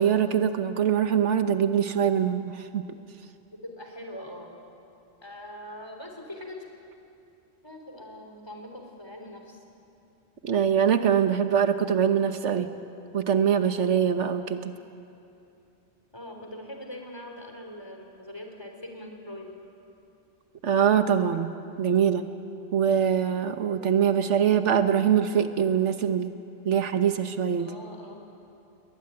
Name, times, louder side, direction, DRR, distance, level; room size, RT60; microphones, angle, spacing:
voice 1, 0.0-2.8 10.4-12.7 13.1-14.6 20.6-22.3 22.7-26.3 26.6-27.7, right 8 dB, 85° right, 9 dB, 1.4 m, -23 dB
voice 2, 3.6-4.5 5.2-6.7 7.6-9.6 16.1-19.5 27.6-28.4, left 1 dB, 20° left, 2 dB, 3.6 m, -42 dB
21.5 x 20.5 x 9.7 m, 2.7 s
omnidirectional pair, 1.2 m